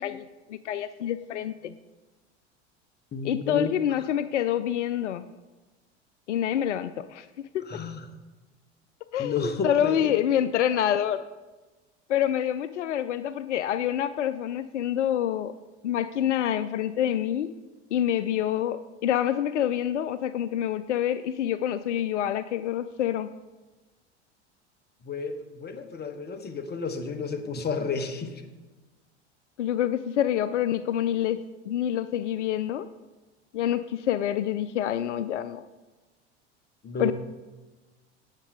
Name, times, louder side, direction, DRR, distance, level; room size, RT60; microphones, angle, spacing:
voice 1, 0.0-1.7 3.2-5.2 6.3-7.3 7.5-7.7 9.1-11.2 12.1-15.5 15.8-17.6 17.9-23.3 29.6-31.4 31.7-32.9 33.5-35.7 37.0-37.1, left 10 dB, 85° left, 14 dB, 0.5 m, -27 dB
voice 2, 3.1-3.8 7.6-8.1 9.2-10.2 25.0-28.4 36.8-37.1, left 4 dB, 30° left, 7 dB, 1.4 m, -32 dB
18.0 x 7.3 x 3.8 m, 1.2 s
hypercardioid pair, 80°, 35 cm